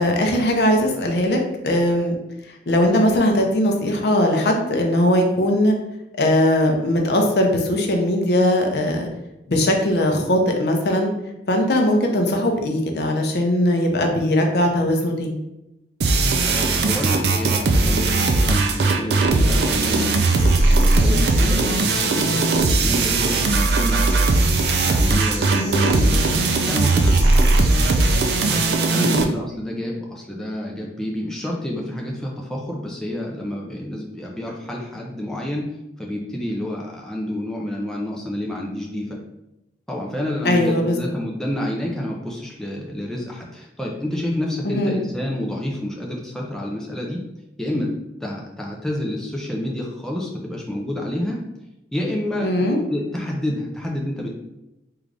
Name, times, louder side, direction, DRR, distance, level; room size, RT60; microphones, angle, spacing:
voice 1, 0.0-1.4 1.6-2.2 2.7-5.7 6.2-9.1 9.5-11.1 11.5-15.4 25.5-26.0 28.9-29.3 40.4-41.0 44.6-45.0 52.4-52.8, left 1 dB, 65° left, 2 dB, 0.6 m, -20 dB
sound 1, 16.0-29.2, right 3 dB, 60° right, 0.4 m, -18 dB
voice 2, 16.4-20.3 20.7-22.5 22.8-24.3 24.8-26.4 26.7-27.6 28.5-35.7 36.0-39.2 39.9-47.2 47.6-48.0 48.2-51.4 51.9-52.6 52.9-54.4, left 1 dB, 5° left, -2 dB, 0.4 m, -29 dB
sound 2, 19.8-28.8, right 2 dB, 80° right, 0.8 m, -36 dB
3.7 x 2.4 x 3.2 m, 0.91 s
head